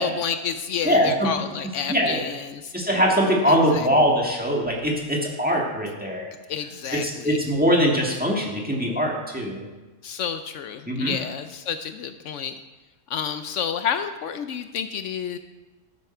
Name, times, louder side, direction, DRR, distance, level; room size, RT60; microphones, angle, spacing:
voice 1, 0.0-2.7 3.5-3.9 6.5-7.4 10.0-12.5 13.1-15.4, left 7 dB, 75° left, 9 dB, 0.9 m, -30 dB
voice 2, 0.8-1.3 1.8-2.2 2.7-6.3 7.0-9.6 10.9-11.1, equal, 5° right, -2 dB, 1.8 m, -22 dB
12.5 x 8.4 x 4.5 m, 1.2 s
omnidirectional pair, 1.3 m